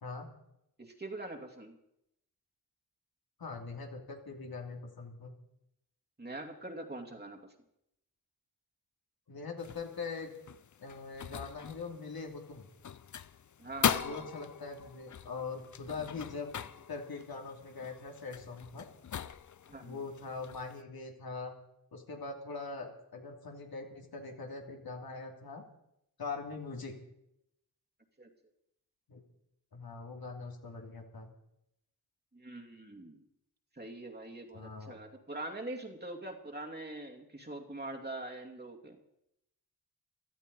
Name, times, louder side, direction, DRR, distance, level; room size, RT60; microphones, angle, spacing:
voice 1, 0.8-1.8 6.2-7.4 13.6-14.3 19.7-20.0 28.2-28.3 32.3-33.2 33.8-39.0, right 2 dB, 25° right, 2 dB, 2.5 m, -43 dB
voice 2, 3.4-5.3 9.3-10.3 10.8-12.7 14.0-18.9 19.8-21.5 21.9-25.6 26.2-26.9 29.1-29.2 29.7-31.3 34.5-35.0, left 4 dB, 70° left, 2 dB, 2.8 m, -42 dB
sound 1, 9.6-20.8, left 8 dB, 50° left, 0.6 m, -40 dB
16.5 x 12.5 x 5.4 m, 0.80 s
cardioid pair, 65°, 38 cm